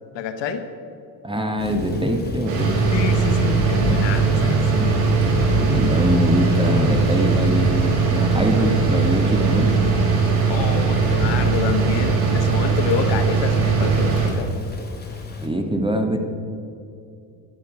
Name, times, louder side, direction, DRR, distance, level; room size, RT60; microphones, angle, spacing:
voice 1, 0.1-0.7 2.9-4.9 10.5-14.5, left 7 dB, 60° left, 8 dB, 1.1 m, -28 dB
voice 2, 1.2-2.7 5.6-9.7 15.4-16.2, equal, 10° right, 5 dB, 1.7 m, -23 dB
Thunder / Rain, 1.6-15.5, left 2 dB, 20° left, 3.1 m, -30 dB
sound 1, 2.5-14.3, right 5 dB, 85° right, 2.3 m, -20 dB
12.0 x 10.5 x 5.1 m, 2.6 s
hypercardioid pair, 55°, 49 cm